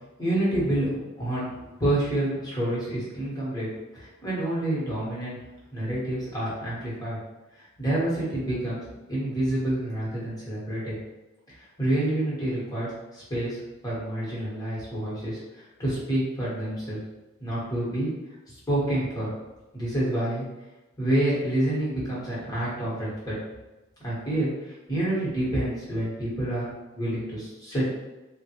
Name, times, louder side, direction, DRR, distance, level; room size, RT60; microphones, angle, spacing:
voice 1, 0.2-0.9 1.2-1.5 1.8-3.7 3.9-5.4 5.7-7.2 7.6-8.8 9.1-10.9 11.5-17.0 17.4-18.1 18.5-19.3 19.7-20.4 21.0-23.4 24.0-28.0, right 1 dB, 20° left, -8 dB, 1.3 m, -28 dB
3.4 x 2.2 x 3.0 m, 1.0 s
head